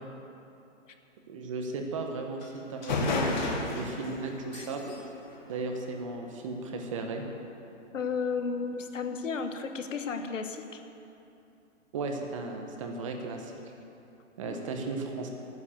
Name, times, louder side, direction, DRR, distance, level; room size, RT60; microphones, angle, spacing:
voice 1, 1.3-4.8 5.5-7.2 11.9-13.5 14.4-15.3, right 3 dB, 25° right, 3 dB, 1.0 m, -35 dB
sound 1, 2.4-2.5 2.8-6.3, left 3 dB, 35° left, 1.5 m, -33 dB
voice 2, 7.9-10.8 14.4-14.6, left 5 dB, 75° left, 7 dB, 1.4 m, -33 dB
12.5 x 9.6 x 7.5 m, 2.8 s
hypercardioid pair, 165°, 38 cm